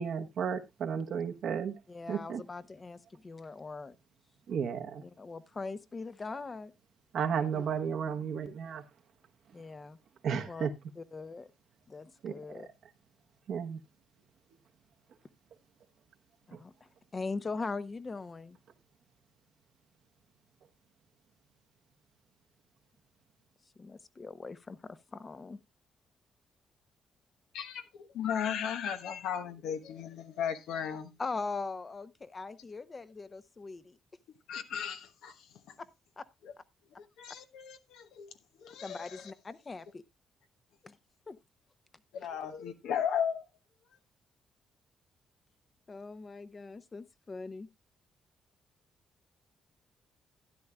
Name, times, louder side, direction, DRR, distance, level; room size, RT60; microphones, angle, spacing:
voice 1, 0.0-1.7 2.1-2.4 4.5-5.0 7.1-8.8 10.2-10.7 12.2-12.3 13.5-13.8 16.5-16.6, right 7 dB, 70° right, 1.0 m, -33 dB
voice 2, 1.9-4.0 5.0-6.7 7.5-7.6 9.5-10.0 10.5-10.7 11.0-11.5 11.9-12.7 16.5-16.7 17.1-18.6 23.8-25.6 31.2-34.0 35.8-35.9 36.2-36.3 38.8-40.0 40.8-41.0 41.3-41.4 45.9-47.7, left 4 dB, 35° left, 0.9 m, -41 dB
voice 3, 27.5-31.2 34.5-35.5 36.4-36.5 37.0-38.3 38.6-39.3 42.1-43.4, left 8 dB, 80° left, 1.1 m, -36 dB
12.5 x 10.5 x 2.3 m
supercardioid pair, 60°, 0 cm